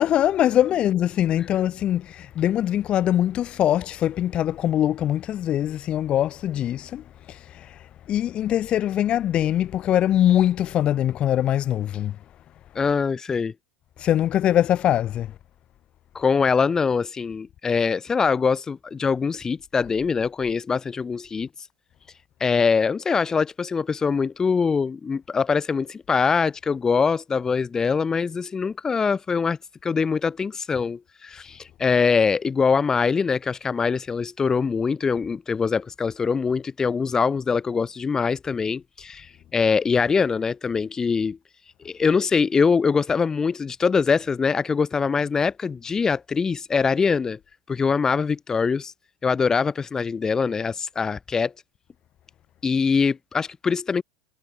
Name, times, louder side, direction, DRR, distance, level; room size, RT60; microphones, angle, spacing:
voice 1, 0.0-7.8 8.1-12.2 14.0-15.3, left 11 dB, 40° left, 6.4 m, -22 dB
voice 2, 12.7-13.5 16.1-21.5 22.4-41.4 41.8-47.4 47.7-48.9 49.2-51.5 52.6-54.0, left 5 dB, 20° left, 5.0 m, -23 dB
hypercardioid pair, 90°, 3 cm